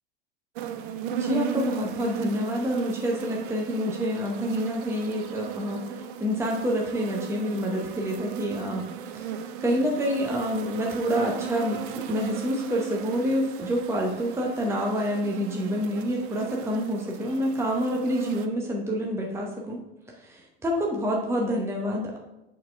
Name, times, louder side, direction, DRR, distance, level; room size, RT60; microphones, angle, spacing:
sound 1, 0.6-18.5, right 8 dB, 55° right, 0.6 m, -36 dB
voice 1, 1.1-19.8 20.1-22.2, equal, 10° right, -1 dB, 0.9 m, -28 dB
6.4 x 4.3 x 3.4 m, 0.97 s
figure-of-eight pair, 80°, 31 cm